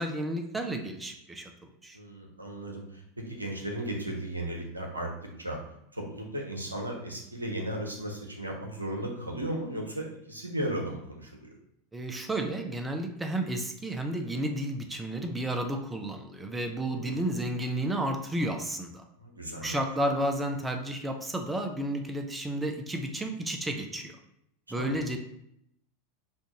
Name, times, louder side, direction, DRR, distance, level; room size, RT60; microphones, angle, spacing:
voice 1, 0.0-1.5 1.8-2.0 11.9-19.0 19.6-24.2 24.7-25.2, right 1 dB, 10° right, 4 dB, 0.5 m, -32 dB
voice 2, 1.9-5.1 5.4-5.6 5.9-11.5 16.8-17.2 19.2-19.8 24.7-25.1, right 1 dB, 90° right, 1 dB, 0.7 m, -35 dB
5.3 x 2.5 x 2.9 m, 0.76 s
figure-of-eight pair, 85°, 0 cm